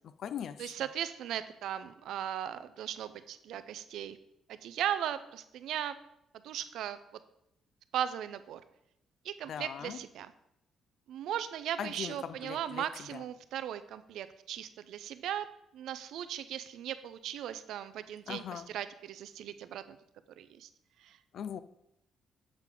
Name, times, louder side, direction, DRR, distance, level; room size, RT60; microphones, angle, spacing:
voice 1, 0.0-0.7 9.5-10.0 11.8-13.2 18.3-18.7 21.3-21.6, left 8 dB, 60° left, 0.3 m, -40 dB
voice 2, 0.6-4.2 4.5-6.0 6.4-7.0 7.9-8.6 9.2-10.3 11.1-15.5 15.7-20.0 20.4-20.7 21.0-21.2, right 10 dB, 80° right, 0.4 m, -37 dB
7.4 x 4.4 x 3.9 m
cardioid pair, 110°, 0 cm